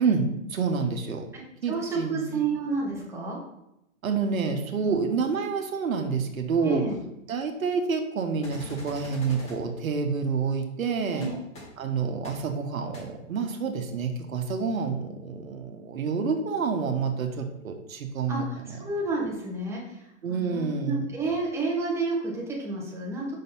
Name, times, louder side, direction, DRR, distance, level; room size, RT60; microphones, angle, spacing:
voice 1, 0.0-1.3 1.6-2.4 4.0-6.8 7.3-11.3 11.8-18.4 20.2-21.1, right 5 dB, 85° right, 4 dB, 1.1 m, -28 dB
voice 2, 1.7-3.4 4.8-5.0 6.6-7.0 11.1-11.4 18.3-20.0 20.3-23.3, right 3 dB, 5° right, -4 dB, 1.5 m, -30 dB
sound 1, 8.4-9.6 11.2-11.3 11.5-11.6 12.2-12.3 12.9-13.0, left 1 dB, 15° left, 2.3 m, -42 dB
5.5 x 3.9 x 5.4 m, 0.85 s
hypercardioid pair, 130°, 40 cm